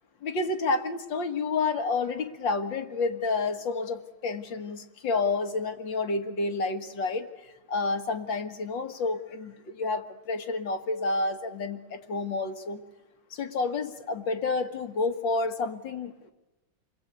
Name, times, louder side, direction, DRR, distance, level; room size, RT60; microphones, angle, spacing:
voice 1, 0.2-7.3 7.7-12.8 13.3-16.3, left 3 dB, 65° left, 8 dB, 2.3 m, -29 dB
29.5 x 21.5 x 8.2 m, 1.1 s
omnidirectional pair, 2.3 m